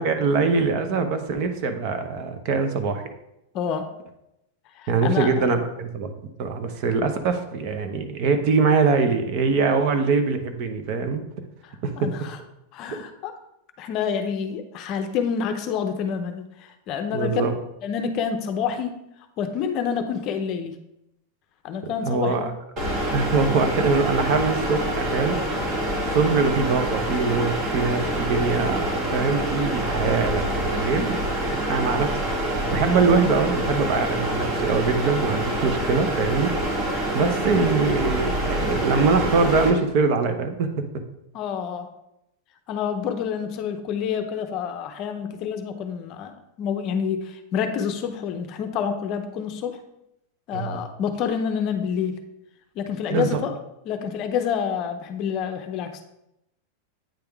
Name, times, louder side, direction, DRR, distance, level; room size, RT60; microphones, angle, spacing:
voice 1, 0.0-3.0 4.9-6.1 6.4-11.2 11.8-12.1 17.1-17.6 21.8-22.5 23.1-25.4 26.1-31.2 31.5-36.5 37.1-40.9 50.5-50.8 53.1-53.4, right 4 dB, 45° right, 7 dB, 0.7 m, -23 dB
voice 2, 3.5-3.9 4.8-5.4 11.6-12.4 12.7-13.3 13.8-17.4 17.8-19.0 19.4-20.7 21.6-22.4 41.3-41.9 42.7-49.8 50.5-52.2 52.8-53.5 53.9-56.0, left 7 dB, 35° left, 7 dB, 0.6 m, -28 dB
sound 1, 22.8-39.7, right 1 dB, 30° right, 1.2 m, -26 dB
8.9 x 3.5 x 3.5 m, 0.84 s
supercardioid pair, 155°, 0 cm